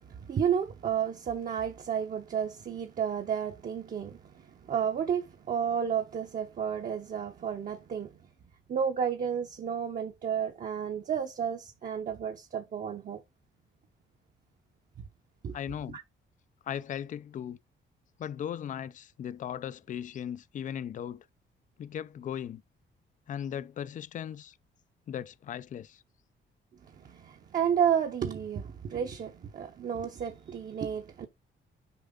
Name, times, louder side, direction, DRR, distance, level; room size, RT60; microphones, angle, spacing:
voice 1, 0.1-8.1 8.7-13.2 15.4-15.5 15.9-16.0 27.0-31.3, right 8 dB, 40° right, 0.8 m, -32 dB
voice 2, 15.5-16.0 16.7-17.6 18.2-21.2 21.8-22.6 23.3-24.5 25.1-26.0, left 9 dB, 40° left, 0.4 m, -37 dB
6.8 x 4.6 x 3.8 m
wide cardioid pair, 165°, 20 cm